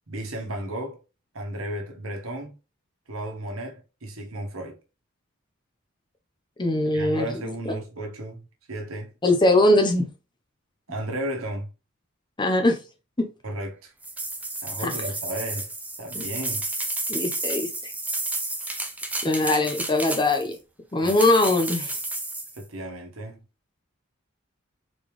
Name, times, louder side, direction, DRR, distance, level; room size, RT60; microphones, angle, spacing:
voice 1, 0.1-1.0 1.3-2.5 3.1-4.8 6.9-9.1 10.9-11.7 13.4-13.9 14.6-15.7 16.0-16.7 21.0-21.1 22.5-23.4, right 1 dB, 85° right, 1.3 m, -34 dB
voice 2, 6.6-7.8 9.2-10.1 12.4-12.8 13.2-13.3 14.8-14.9 16.1-16.2 17.1-17.9 19.2-20.5 20.9-22.0, left 2 dB, 20° left, 0.8 m, -22 dB
sound 1, 14.0-20.5 21.0-22.6, right 2 dB, 5° right, 0.6 m, -31 dB
4.1 x 3.5 x 3.1 m
head